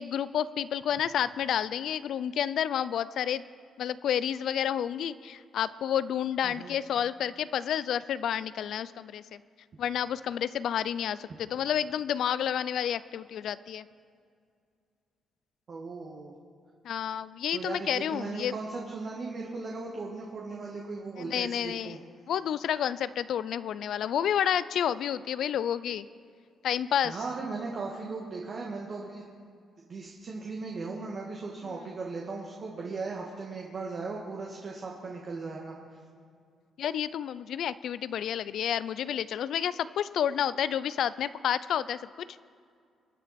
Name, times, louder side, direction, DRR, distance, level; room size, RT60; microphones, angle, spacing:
voice 1, 0.0-3.4 3.8-9.4 9.8-13.9 16.8-18.5 21.2-22.0 22.3-26.1 26.6-27.2 31.7-31.8 36.8-42.0, left 9 dB, 70° left, 16 dB, 0.4 m, -30 dB
voice 2, 6.4-6.7 15.7-16.3 17.5-22.0 27.0-29.3 29.9-35.7, right 3 dB, 50° right, -2 dB, 1.7 m, -37 dB
23.5 x 9.2 x 4.2 m, 2.2 s
cardioid pair, 90°, 0 cm